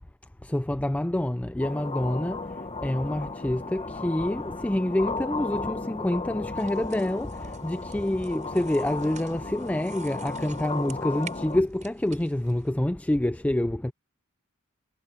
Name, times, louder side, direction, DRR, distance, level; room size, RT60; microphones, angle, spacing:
voice 1, 0.4-2.5 2.8-13.9, left 1 dB, 5° left, 0.4 m, -27 dB
sound 1, 1.6-11.6, left 3 dB, 30° left, 1.4 m, -35 dB
sound 2, 6.6-12.7, right 5 dB, 35° right, 7.0 m, -49 dB
head